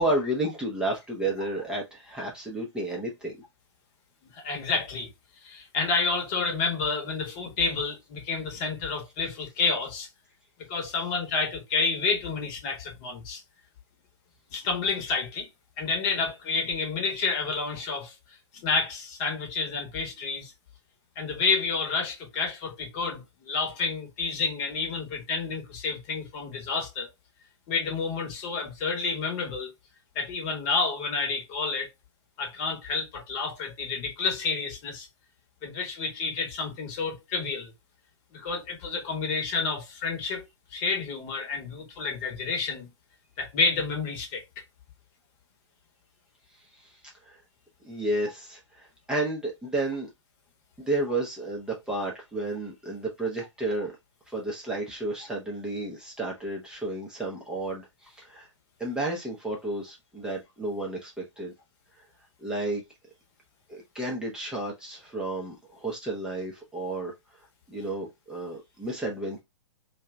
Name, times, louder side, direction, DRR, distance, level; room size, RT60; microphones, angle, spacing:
voice 1, 0.0-3.3 46.7-47.4 47.8-50.1 50.8-53.9 54.3-58.5 58.8-61.5 62.4-62.8 63.7-67.1 67.4-69.4, right 2 dB, 5° right, 0.7 m, -32 dB
voice 2, 4.3-5.1 5.4-10.1 10.7-13.4 14.5-15.5 15.8-20.5 21.2-27.1 27.7-29.7 30.1-31.9 32.4-35.1 35.6-37.7 38.3-42.9 43.4-44.4, left 4 dB, 35° left, 1.0 m, -29 dB
2.7 x 2.3 x 3.3 m
figure-of-eight pair, 115°, 16 cm